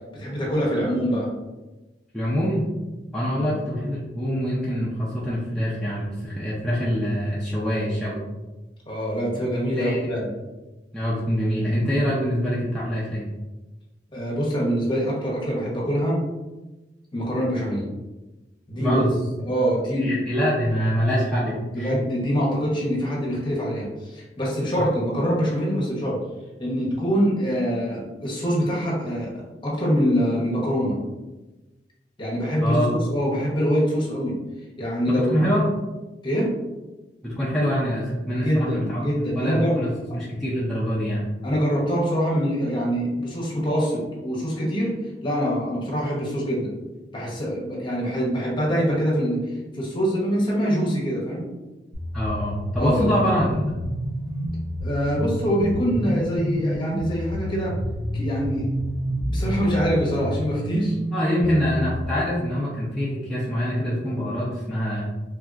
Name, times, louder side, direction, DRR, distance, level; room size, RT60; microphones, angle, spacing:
voice 1, 0.1-1.3 3.4-3.6 8.9-10.3 14.1-16.2 17.1-17.8 18.7-19.0 19.4-20.2 21.7-26.2 26.6-29.3 29.6-31.0 32.2-34.4 34.8-35.4 36.2-36.5 38.4-39.7 41.4-44.9 45.2-46.7 47.1-49.4 49.7-51.5 52.8-53.1 54.8-57.8 58.1-58.7 59.3-61.0, equal, 25° left, -4 dB, 0.9 m, -24 dB
voice 2, 2.1-2.6 3.1-8.2 9.8-10.1 10.9-13.3 18.8-19.1 20.0-22.0 32.6-33.0 35.1-35.6 37.2-39.9 40.1-41.2 52.1-53.6 61.1-65.1, equal, 5° left, -9 dB, 0.5 m, -25 dB
sound 1, 51.9-62.0, equal, 80° right, 0.9 m, -29 dB
3.2 x 2.8 x 2.4 m, 1.1 s
head